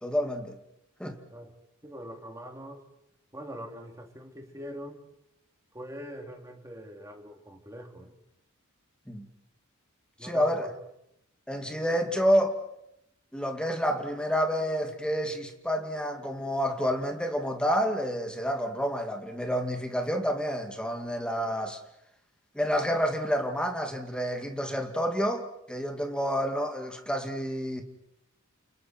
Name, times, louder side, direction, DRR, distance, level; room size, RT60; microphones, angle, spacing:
voice 1, 0.0-0.6 1.0-1.2 9.1-9.3 10.2-10.7 11.5-12.6 13.3-21.8 22.5-27.8, equal, 5° left, 2.3 m, -29 dB
voice 2, 1.8-2.8 3.3-5.0 5.7-8.1 10.2-10.7, equal, 15° right, 3.3 m, -43 dB
29.5 x 29.0 x 4.6 m
head